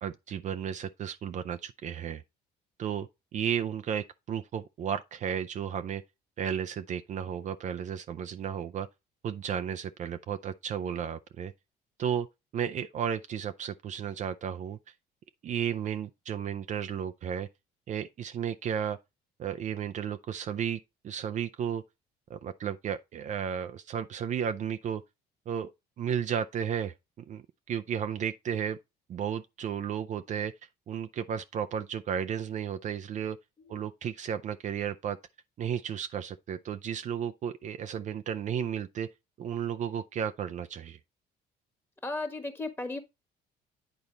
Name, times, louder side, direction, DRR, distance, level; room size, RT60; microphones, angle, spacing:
voice 1, 0.0-2.2 2.8-6.0 6.4-8.9 9.2-11.5 12.0-12.3 12.5-14.8 15.4-17.5 17.9-19.0 19.4-21.8 22.3-25.0 25.5-25.7 26.0-28.8 29.1-30.5 30.9-33.4 33.7-35.2 35.6-39.1 39.4-41.0, right 8 dB, 45° right, 0.5 m, -33 dB
voice 2, 42.0-43.0, left 2 dB, 15° left, 1.4 m, -35 dB
8.9 x 4.2 x 3.9 m
cardioid pair, 110°, 17 cm